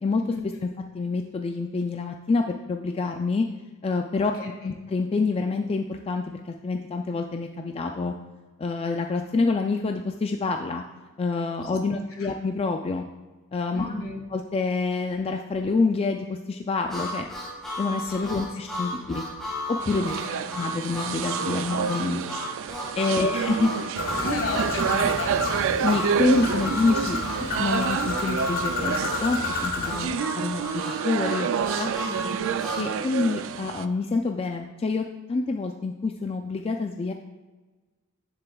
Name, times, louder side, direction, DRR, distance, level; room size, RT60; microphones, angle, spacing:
voice 1, 0.3-0.6 4.1-4.7 11.9-12.3 13.7-14.2 18.0-18.6 20.0-20.5 23.2-23.3 24.2-25.7 32.1-32.9, left 2 dB, 70° left, 2 dB, 1.6 m, -35 dB
voice 2, 0.9-3.5 3.8-4.3 4.6-8.1 8.6-10.8 11.2-13.0 13.5-13.9 14.3-17.3 17.8-19.2 19.7-20.1 20.5-22.2 23.0-24.3 25.8-31.9 32.7-37.1, left 3 dB, 25° left, 4 dB, 0.3 m, -27 dB
Harmonica, 16.9-32.9, equal, ahead, 2.3 m, -34 dB
sound 1, 19.8-33.9, right 7 dB, 60° right, 0.3 m, -29 dB
Bird, 24.0-30.1, left 3 dB, 45° left, 0.8 m, -31 dB
10.0 x 6.8 x 2.3 m, 1.3 s
head